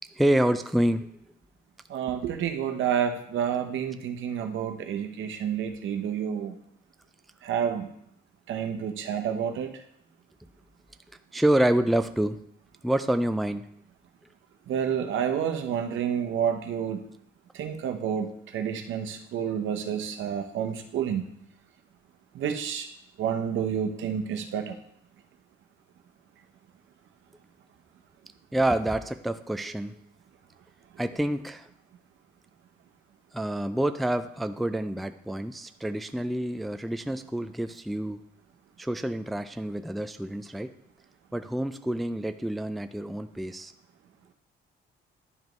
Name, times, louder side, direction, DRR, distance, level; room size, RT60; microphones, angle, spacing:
voice 1, 0.2-1.1 11.3-12.4 12.8-13.7 28.5-30.0 31.0-31.7 33.3-38.2 38.8-40.7 41.3-43.7, right 1 dB, ahead, 9 dB, 0.3 m, -27 dB
voice 2, 1.9-6.5 7.4-7.9 8.5-9.7 14.7-17.0 17.5-21.3 22.3-22.9 23.2-24.7, right 8 dB, 75° right, 5 dB, 0.9 m, -29 dB
11.0 x 5.0 x 3.1 m, 0.72 s
cardioid pair, 90°, 20 cm